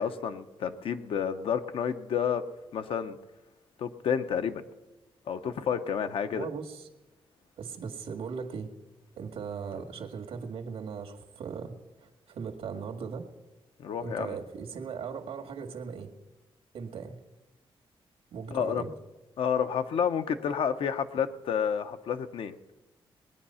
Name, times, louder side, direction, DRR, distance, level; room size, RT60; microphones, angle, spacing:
voice 1, 0.0-2.4 2.7-3.2 3.8-4.6 5.3-6.5 13.8-14.4 18.5-18.8 19.4-22.6, left 7 dB, 70° left, 9 dB, 0.9 m, -30 dB
voice 2, 6.3-6.9 7.6-8.7 9.2-13.3 14.0-16.1 16.7-17.2 18.3-18.9, right 6 dB, 90° right, 4 dB, 1.8 m, -38 dB
20.0 x 9.6 x 5.6 m, 1.1 s
wide cardioid pair, 145°, 10 cm